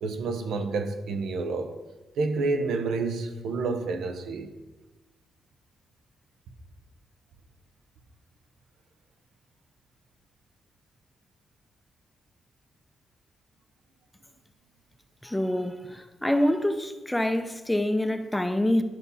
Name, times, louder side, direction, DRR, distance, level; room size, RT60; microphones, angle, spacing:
voice 1, 0.0-1.8 2.2-4.5, right 3 dB, 85° right, 1.0 m, -29 dB
voice 2, 15.2-18.8, left 1 dB, 5° left, 0.6 m, -26 dB
12.0 x 5.6 x 4.1 m
cardioid pair, 120°, 0 cm